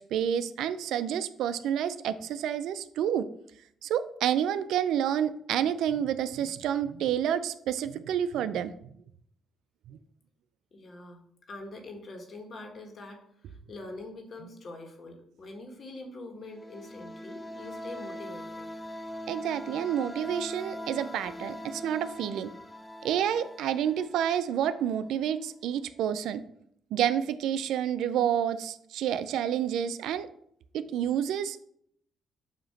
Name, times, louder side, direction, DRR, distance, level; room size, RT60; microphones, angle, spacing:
voice 1, 0.0-3.3 3.8-8.7 9.9-10.0 19.3-22.5 23.0-26.4 26.9-30.3 30.7-31.6, right 9 dB, 85° right, 13 dB, 0.4 m, -29 dB
voice 2, 10.7-18.7, left 2 dB, 50° left, 3 dB, 1.6 m, -44 dB
sound 1, 16.5-25.1, left 1 dB, 15° left, 0.4 m, -42 dB
7.5 x 2.9 x 5.7 m, 0.68 s
cardioid pair, 90°, 0 cm